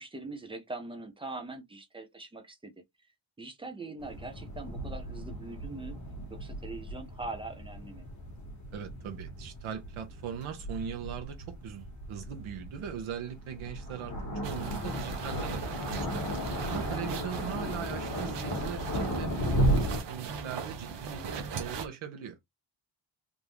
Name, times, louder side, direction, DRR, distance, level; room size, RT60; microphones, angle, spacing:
voice 1, 0.0-2.7 3.4-6.0 6.3-8.1 16.8-17.2, right 3 dB, 10° right, 0.6 m, -42 dB
sound 1, 4.0-20.0, equal, 40° left, 1.5 m, -35 dB
voice 2, 8.7-15.6 15.9-16.2 16.7-19.7 20.1-22.4, right 8 dB, 85° right, 0.9 m, -40 dB
sound 2, 14.4-21.9, right 5 dB, 60° right, 0.9 m, -39 dB
3.6 x 2.7 x 3.1 m
wide cardioid pair, 175°, 47 cm